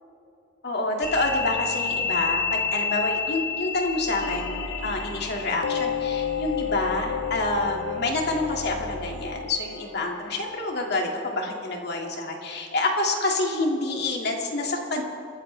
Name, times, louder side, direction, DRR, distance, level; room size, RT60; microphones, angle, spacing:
voice 1, 0.6-4.6 4.8-15.0, left 2 dB, 60° left, 1 dB, 2.2 m, -27 dB
sound 1, 1.0-9.6, left 5 dB, 15° left, 3.3 m, -32 dB
sound 2, 4.2-11.1, left 8 dB, 85° left, 0.5 m, -33 dB
29.5 x 13.5 x 3.3 m, 2.7 s
head